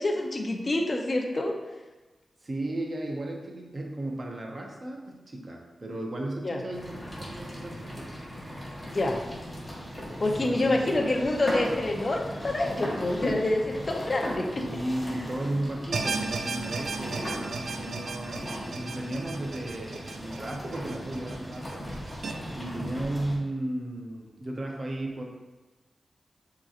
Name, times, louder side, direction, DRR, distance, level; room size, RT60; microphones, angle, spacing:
voice 1, 0.0-1.5 6.4-6.6 8.9-9.2 10.2-14.6, left 2 dB, 40° left, 2 dB, 0.6 m, -27 dB
voice 2, 2.4-8.1 10.4-11.1 14.6-21.9 22.6-25.2, right 1 dB, 40° right, 0 dB, 0.8 m, -34 dB
sound 1, 6.7-23.4, equal, 15° left, 1.2 m, -38 dB
sound 2, 15.9-22.3, right 4 dB, 70° right, 0.4 m, -35 dB
6.6 x 3.0 x 2.5 m, 1.2 s
wide cardioid pair, 85°, 0 cm